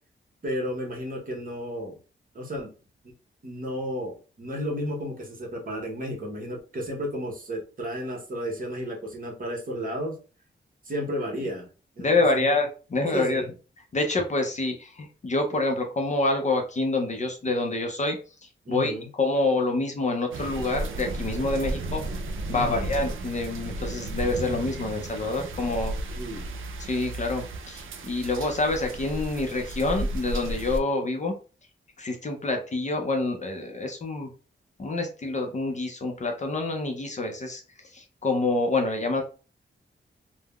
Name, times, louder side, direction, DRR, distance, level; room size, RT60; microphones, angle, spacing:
voice 1, 0.4-2.0 2.3-2.7 3.0-3.1 3.4-10.2 10.8-11.7 12.0-12.4 13.1-13.5 18.6-19.1 22.5-22.9 26.1-26.5, equal, 45° right, -1 dB, 0.9 m, -33 dB
voice 2, 12.0-13.4 13.9-22.0 22.5-25.9 26.8-31.3 32.0-34.3 34.8-37.6 37.9-39.2, left 2 dB, 35° left, 3 dB, 0.5 m, -27 dB
sound 1, 20.3-30.8, right 1 dB, 90° right, 0.4 m, -34 dB
3.4 x 2.0 x 2.3 m, 0.35 s
wide cardioid pair, 175°, 20 cm